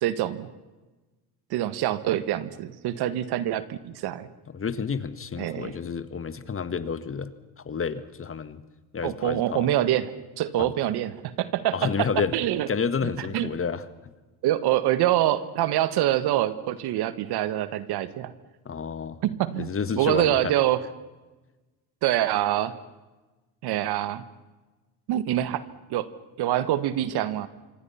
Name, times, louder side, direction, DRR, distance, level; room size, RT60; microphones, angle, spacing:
voice 1, 0.0-0.5 1.5-4.3 5.4-5.7 9.0-10.1 10.4-12.1 12.3-12.7 13.2-13.5 14.4-18.3 19.2-19.7 20.0-20.8 22.0-22.7 23.6-24.2 25.1-25.6 25.9-26.1 26.4-27.5, right 13 dB, 70° right, 14 dB, 1.7 m, -25 dB
voice 2, 4.5-7.3 7.7-8.6 8.9-9.7 10.6-10.7 11.7-12.3 12.7-13.9 18.7-19.2 19.5-20.5, left 6 dB, 30° left, 13 dB, 1.8 m, -30 dB
26.0 x 24.5 x 5.8 m, 1.2 s
supercardioid pair, 80°, 41 cm